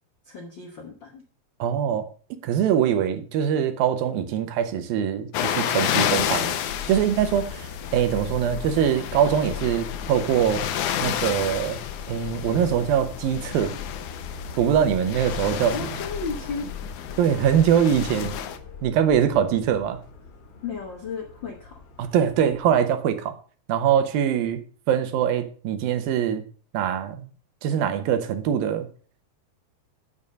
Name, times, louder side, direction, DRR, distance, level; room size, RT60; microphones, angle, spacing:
voice 1, 0.2-1.2 15.7-16.7 20.6-21.8, left 4 dB, 85° left, 1.0 m, -34 dB
voice 2, 1.6-2.1 2.4-6.5 6.9-10.6 11.0-11.8 12.1-13.7 14.6-15.8 17.2-18.3 18.8-20.0 22.0-23.4 23.7-26.4 26.7-27.3 27.6-28.9, right 9 dB, 80° right, 2.8 m, -23 dB
sound 1, 5.3-18.6, left 10 dB, 70° left, 2.0 m, -31 dB
Subway metro underground, 6.7-22.8, left 6 dB, 45° left, 2.5 m, -39 dB
8.8 x 7.1 x 5.2 m
omnidirectional pair, 4.2 m